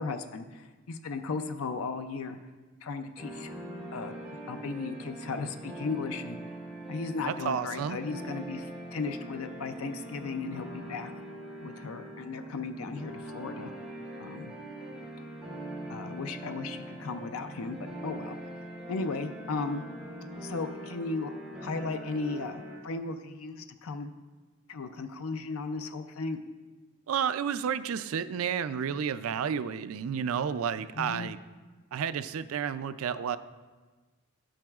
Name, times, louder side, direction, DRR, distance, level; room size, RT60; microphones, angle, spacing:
voice 1, 0.0-2.4 2.8-3.5 3.9-4.1 4.5-6.4 6.9-11.1 11.6-13.7 14.2-14.5 15.9-18.4 18.9-19.9 20.4-21.3 21.6-24.1 24.7-26.4 31.0-31.3, left 4 dB, 75° left, 8 dB, 0.5 m, -36 dB
sound 1, 3.2-22.8, right 1 dB, 5° right, 2.6 m, -42 dB
voice 2, 7.2-8.0 27.1-31.4 31.9-33.4, right 7 dB, 75° right, 13 dB, 0.4 m, -31 dB
11.5 x 8.8 x 2.4 m, 1.3 s
head